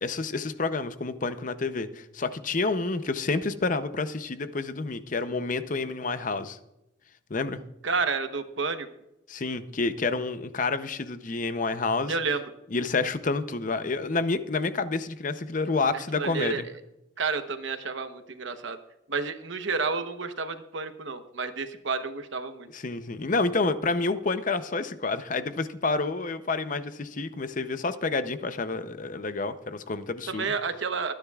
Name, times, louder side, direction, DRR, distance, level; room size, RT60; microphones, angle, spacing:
voice 1, 0.0-6.6 7.3-7.6 9.3-12.1 12.7-16.6 22.7-30.5, left 3 dB, 40° left, 11 dB, 0.6 m, -29 dB
voice 2, 7.8-8.9 12.1-12.4 16.1-16.6 17.2-18.8 19.1-22.7 30.3-31.1, right 4 dB, 70° right, 9 dB, 1.0 m, -30 dB
24.0 x 10.0 x 2.4 m, 0.90 s
head